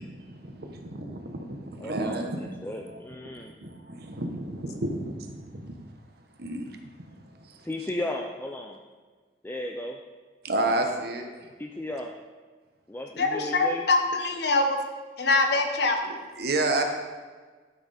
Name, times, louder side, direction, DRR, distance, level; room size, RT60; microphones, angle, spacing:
voice 1, 0.0-3.3 3.6-5.8 6.4-6.8 7.4-7.7 10.4-11.3 16.0-16.8, right 2 dB, 60° right, 4 dB, 1.1 m, -31 dB
voice 2, 1.8-2.2 2.6-3.5 7.6-8.8 9.4-10.0 11.6-12.1 12.9-13.8, left 1 dB, 10° left, 1 dB, 0.4 m, -34 dB
voice 3, 13.2-14.6 15.2-16.0, left 3 dB, 60° left, 4 dB, 1.1 m, -23 dB
12.0 x 6.0 x 4.2 m, 1.4 s
head